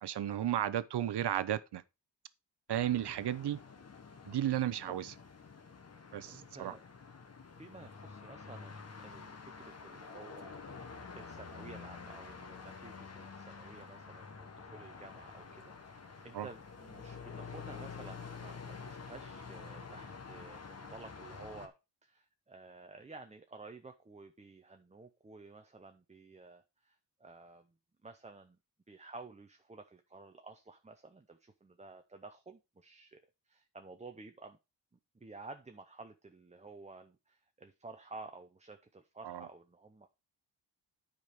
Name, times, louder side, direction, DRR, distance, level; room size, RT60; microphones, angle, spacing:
voice 1, 0.0-1.8 2.7-3.6 4.3-5.1 6.1-6.7 16.3-16.5 39.2-39.4, right 11 dB, 65° right, 0.7 m, -33 dB
sound 1, 2.7-21.7, left 5 dB, 35° left, 1.2 m, -49 dB
voice 2, 3.2-3.6 4.8-5.0 6.2-6.8 7.6-21.7 22.0-27.7 28.0-28.6 28.9-33.2 33.5-34.6 35.1-40.1, right 3 dB, 15° right, 0.6 m, -52 dB
9.3 x 5.3 x 4.7 m
wide cardioid pair, 125°, 43 cm